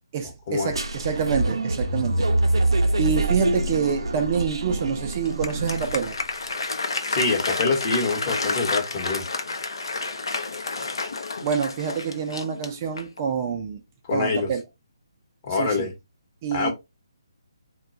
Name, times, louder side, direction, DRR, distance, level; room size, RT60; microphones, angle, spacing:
voice 1, 0.1-2.3 3.0-6.2 11.4-13.8 14.1-14.6 15.5-15.9 16.4-16.7, right 7 dB, 30° right, 0.4 m, -27 dB
sound 1, 0.7-6.3, right 2 dB, 85° right, 0.5 m, -25 dB
Applause, 5.1-13.3, left 3 dB, 75° left, 0.6 m, -30 dB
voice 2, 7.1-9.3 14.0-14.5 15.4-15.9 16.5-16.7, left 4 dB, 35° left, 0.9 m, -25 dB
2.2 x 2.2 x 3.8 m
hypercardioid pair, 155°, 3 cm